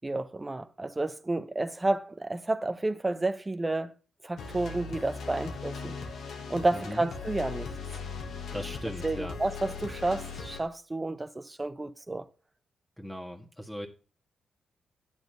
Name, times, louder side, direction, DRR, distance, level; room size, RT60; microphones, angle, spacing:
voice 1, 0.0-3.9 4.2-6.0 6.5-7.7 9.0-12.3, right 2 dB, 25° right, 0.8 m, -31 dB
sound 1, 4.4-10.6, left 5 dB, 75° left, 1.5 m, -39 dB
voice 2, 6.7-7.1 8.5-9.4 13.0-13.9, equal, 5° left, 1.7 m, -38 dB
8.9 x 4.2 x 6.5 m
supercardioid pair, 50°, 0 cm